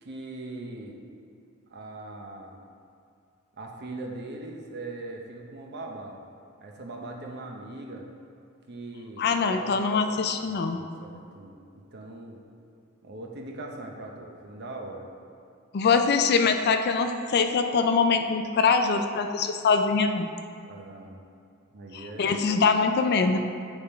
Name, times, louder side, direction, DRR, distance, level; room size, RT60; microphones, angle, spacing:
voice 1, 0.0-1.0 1.7-2.6 3.6-6.2 6.6-8.1 8.7-9.6 10.0-12.4 13.0-15.1 20.6-21.2 21.7-22.3, right 2 dB, 50° right, 1 dB, 0.8 m, -40 dB
voice 2, 9.2-10.8 15.7-20.3 21.9-23.4, left 5 dB, 50° left, 7 dB, 0.4 m, -23 dB
8.7 x 3.5 x 4.3 m, 2.4 s
head